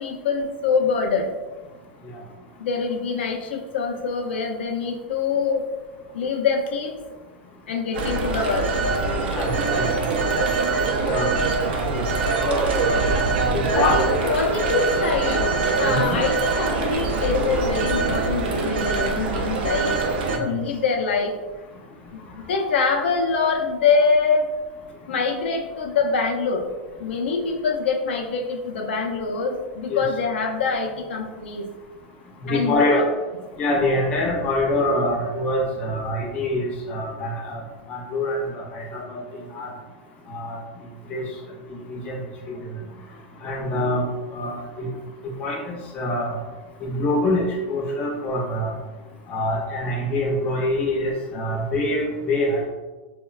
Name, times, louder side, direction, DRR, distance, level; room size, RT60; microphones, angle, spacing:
voice 1, 0.0-1.3 2.6-5.7 6.1-6.9 7.7-8.7 13.7-15.5 15.8-20.0 20.4-21.4 22.1-24.5 25.1-26.7 27.0-31.7 32.5-33.0, left 4 dB, 90° left, 1 dB, 0.4 m, -24 dB
Telephone, 7.9-20.4, right 3 dB, 70° right, 0.4 m, -23 dB
voice 2, 9.3-10.1 11.0-11.3 11.6-13.0 13.5-14.4 15.8-16.1 20.3-20.6 29.9-30.0 32.4-33.0 33.6-37.6 37.9-39.2 39.5-39.7 40.3-40.6 41.1-41.3 41.9-42.2 42.5-42.6 43.4-44.0 44.3-44.9 45.2-46.3 46.8-48.7 49.3-52.7, left 1 dB, 20° left, -2 dB, 0.4 m, -25 dB
2.9 x 2.1 x 2.3 m, 1.3 s
supercardioid pair, 165°, 6 cm